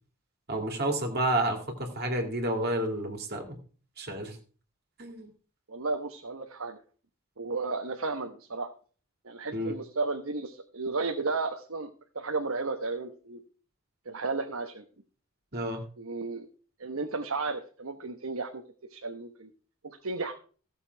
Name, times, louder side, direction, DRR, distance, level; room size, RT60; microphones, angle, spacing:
voice 1, 0.5-3.6 4.0-4.4 5.0-5.3 9.5-9.7 15.5-15.8, right 1 dB, 45° right, 3 dB, 2.5 m, -30 dB
voice 2, 5.7-6.8 7.4-8.7 9.2-11.9 12.1-13.4 14.1-14.8 16.0-16.5 16.8-18.6 18.9-19.5 19.8-20.4, right 3 dB, 75° right, 4 dB, 1.2 m, -33 dB
15.5 x 6.9 x 4.6 m, 0.40 s
head